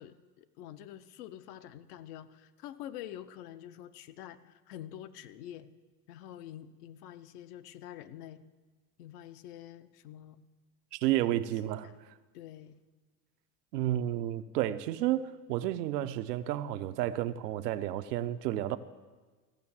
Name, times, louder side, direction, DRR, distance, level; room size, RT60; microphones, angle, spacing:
voice 1, 0.0-5.7 6.1-8.4 9.0-10.4 11.2-11.4 11.8-11.9 12.3-12.8, left 11 dB, 65° left, 0.8 m, -47 dB
voice 2, 10.9-12.1 13.7-18.8, right 13 dB, 75° right, 0.8 m, -31 dB
15.0 x 5.8 x 7.2 m
hypercardioid pair, 110°, 49 cm